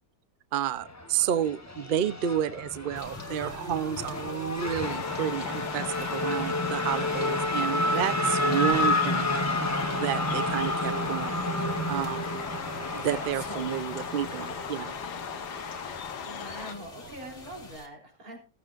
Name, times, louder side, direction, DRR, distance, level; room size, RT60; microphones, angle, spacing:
voice 1, 0.5-9.3 9.9-11.4 11.9-12.2 12.9-14.9, right 10 dB, 85° right, 15 dB, 0.4 m, -30 dB
Race car auto racing / Accelerating revving vroom, 0.8-17.8, left 1 dB, 10° left, 0.9 m, -31 dB
sound 1, 3.0-17.9, left 4 dB, 45° left, 2.1 m, -51 dB
sound 2, 4.8-16.7, left 8 dB, 70° left, 1.5 m, -38 dB
voice 2, 13.1-13.8 16.2-18.4, right 1 dB, 55° right, 1 dB, 4.3 m, -43 dB
15.0 x 14.5 x 2.5 m, 0.32 s
omnidirectional pair, 1.8 m